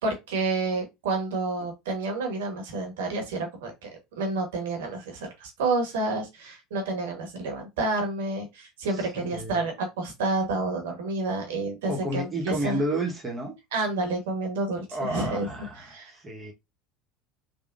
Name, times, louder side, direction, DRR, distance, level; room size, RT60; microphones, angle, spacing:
voice 1, 0.0-3.9 4.1-12.8 13.7-15.5 15.8-16.1, right 2 dB, 80° right, 1.2 m, -29 dB
voice 2, 8.9-9.6 11.9-13.6 14.9-16.5, right 1 dB, 25° right, 1.1 m, -31 dB
3.5 x 2.3 x 2.5 m
hypercardioid pair, 80°, 0 cm